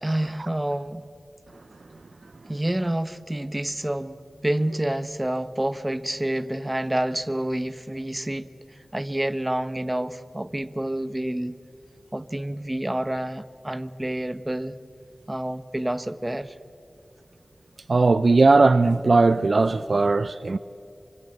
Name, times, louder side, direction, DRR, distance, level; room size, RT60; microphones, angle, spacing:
voice 1, 0.0-1.1 2.5-8.5 8.9-11.6 12.1-14.8 15.3-16.6, right 1 dB, 20° right, 1.0 m, -28 dB
voice 2, 17.9-20.6, right 3 dB, 65° right, 0.6 m, -18 dB
25.5 x 25.0 x 8.0 m
wide cardioid pair, 60°, 0 cm